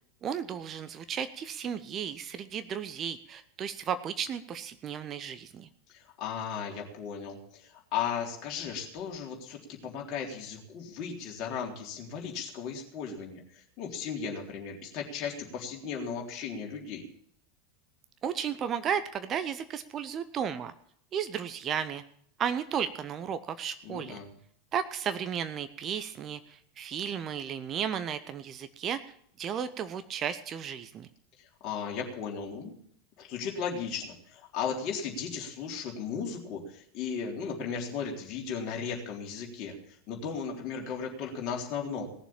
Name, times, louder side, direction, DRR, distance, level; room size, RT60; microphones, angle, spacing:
voice 1, 0.2-5.7 18.2-20.7 21.1-22.0 22.4-24.2 24.7-29.1 29.4-31.1, right 8 dB, 30° right, 12 dB, 0.9 m, -34 dB
voice 2, 5.9-17.1 23.8-24.3 31.4-32.8 33.2-39.8 40.1-42.1, left 6 dB, 40° left, -1 dB, 3.7 m, -36 dB
18.5 x 7.1 x 8.9 m, 0.64 s
figure-of-eight pair, 85°, 0 cm